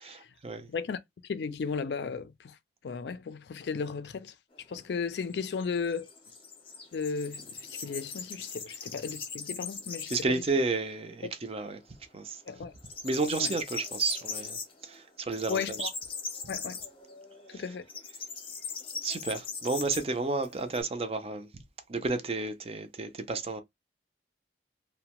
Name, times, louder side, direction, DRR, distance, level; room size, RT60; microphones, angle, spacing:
voice 1, 0.0-0.7 10.1-11.8 12.1-12.4 13.0-15.9 17.5-17.6 19.0-21.5 21.9-23.6, right 3 dB, 35° right, 0.5 m, -31 dB
voice 2, 0.7-2.6 2.8-4.3 4.7-6.1 6.9-10.4 12.5-12.7 13.4-13.5 15.5-15.9 16.5-16.8 17.5-17.8, left 5 dB, 70° left, 0.4 m, -35 dB
sound 1, 4.5-10.4 10.8-10.9 11.3-12.1 12.3-20.8, left 5 dB, 30° left, 0.7 m, -41 dB
2.6 x 2.1 x 2.9 m
head